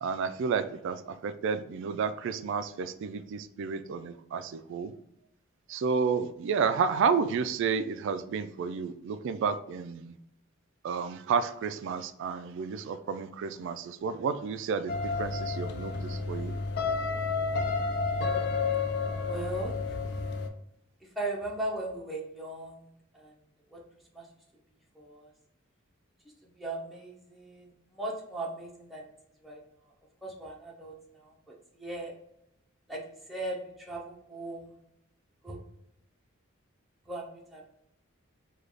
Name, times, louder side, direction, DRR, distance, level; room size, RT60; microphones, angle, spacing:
voice 1, 0.0-4.9 5.7-10.1 10.8-16.5, right 5 dB, 65° right, 11 dB, 0.3 m, -31 dB
sound 1, 14.9-20.5, left 4 dB, 55° left, 0.4 m, -31 dB
voice 2, 19.2-20.0 21.0-23.3 23.7-23.8 24.1-24.3 24.9-25.3 26.4-29.1 29.4-29.9 30.2-32.1 32.9-34.8 35.4-35.6 37.1-37.6, right 1 dB, ahead, -3 dB, 0.7 m, -38 dB
3.3 x 2.3 x 3.8 m, 0.80 s
head